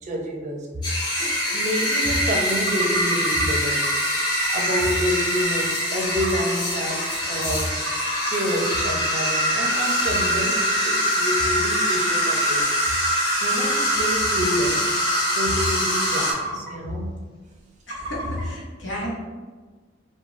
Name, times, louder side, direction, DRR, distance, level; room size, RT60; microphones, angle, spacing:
voice 1, 0.0-0.7 1.5-3.8 4.5-7.9 8.3-12.7 13.4-14.9 15.3-17.1, equal, 40° right, 0 dB, 0.4 m, -28 dB
sound 1, 0.8-16.3, equal, 25° left, 0.6 m, -23 dB
sound 2, 2.5-3.4 3.8-4.5 5.0-5.1 5.4-5.5 6.0-6.6 7.1-7.2 7.4-8.3 8.7-8.8 10.0-10.1 10.5-10.6 11.6-11.8 12.6-12.7 13.3-13.4 13.7-13.8 14.0-14.1 14.6-14.7 14.9-15.2 15.6-16.7 17.9-18.4, right 3 dB, 75° left, 1.5 m, -33 dB
voice 2, 17.9-19.1, equal, 90° left, -4 dB, 0.8 m, -32 dB
2.5 x 2.1 x 3.0 m, 1.4 s
head